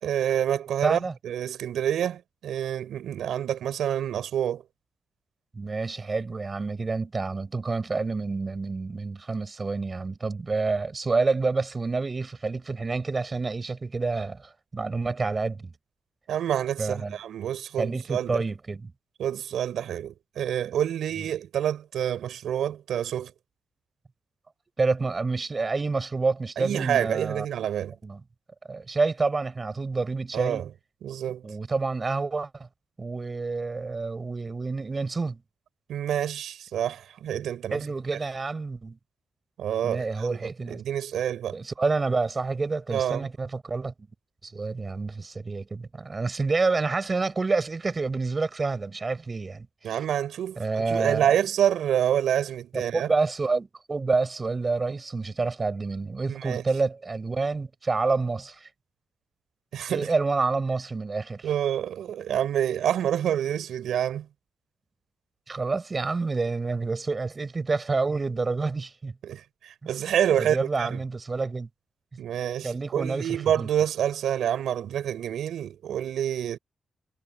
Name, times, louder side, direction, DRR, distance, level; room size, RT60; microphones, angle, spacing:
voice 1, 0.0-4.6 16.3-18.4 19.2-23.3 26.6-28.0 30.3-30.7 31.0-31.5 35.9-37.8 39.6-40.4 40.7-41.6 42.9-43.3 49.8-53.1 56.3-56.6 59.7-60.1 61.4-64.3 69.2-71.0 72.2-76.6, right 10 dB, 90° right, 4.8 m, -27 dB
voice 2, 0.8-1.1 5.5-15.7 16.8-17.2 17.8-18.9 24.8-27.5 28.0-28.2 28.7-30.6 31.4-32.7 33.0-35.4 37.7-39.0 39.8-40.8 41.5-43.9 44.4-49.9 50.6-51.3 52.7-58.7 59.9-61.5 65.5-69.1 70.4-71.7 72.6-73.7, right 3 dB, 35° right, 5.4 m, -28 dB
cardioid pair, 75°, 0 cm